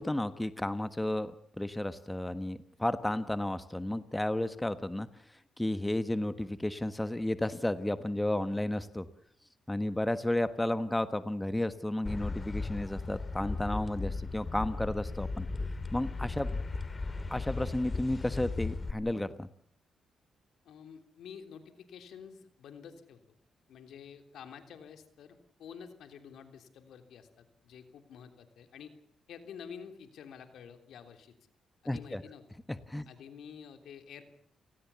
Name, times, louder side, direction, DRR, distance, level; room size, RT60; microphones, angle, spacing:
voice 1, 0.0-5.1 5.6-9.1 9.7-15.5 15.9-16.5 17.3-19.5 31.8-32.2 32.9-33.1, left 1 dB, 10° left, 11 dB, 1.4 m, -32 dB
sound 1, 12.1-18.9, left 3 dB, 30° left, 2.8 m, -36 dB
voice 2, 20.6-23.2 23.7-28.9 29.3-31.3 31.8-32.4 33.1-34.2, left 7 dB, 80° left, 7 dB, 3.3 m, -49 dB
30.0 x 18.5 x 7.1 m, 0.62 s
cardioid pair, 85°, 0 cm